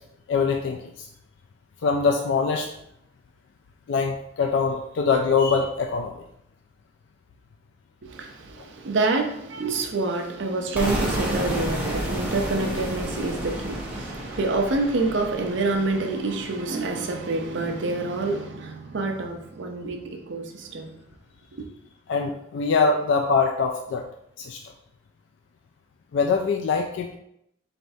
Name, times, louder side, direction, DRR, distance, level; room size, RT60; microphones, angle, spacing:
voice 1, 0.3-1.1 1.8-2.7 3.9-6.2 8.6-8.7 22.1-24.0 24.4-24.6 26.1-27.2, left 5 dB, 65° left, 0.3 m, -23 dB
voice 2, 8.0-21.0 21.5-21.6, right 3 dB, 65° right, 0.6 m, -27 dB
sound 1, 10.7-16.6, right 1 dB, 5° right, 0.7 m, -31 dB
4.0 x 3.4 x 2.6 m
head